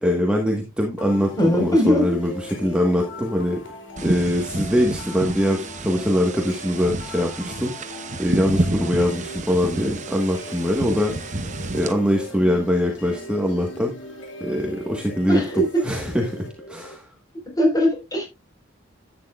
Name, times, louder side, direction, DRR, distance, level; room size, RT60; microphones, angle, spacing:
voice 1, 0.0-3.6 4.0-7.7 8.2-11.1 11.7-13.9 14.4-16.4 16.7-17.0, equal, 5° right, 1 dB, 1.3 m, -22 dB
sound 1, 1.0-17.0, left 1 dB, 65° left, 3.0 m, -40 dB
voice 2, 1.4-2.1 15.3-15.6 17.6-18.2, equal, 20° left, 1 dB, 4.4 m, -20 dB
sound 2, 4.0-11.9, right 2 dB, 40° right, 0.9 m, -30 dB
11.5 x 8.9 x 2.4 m, 0.24 s
head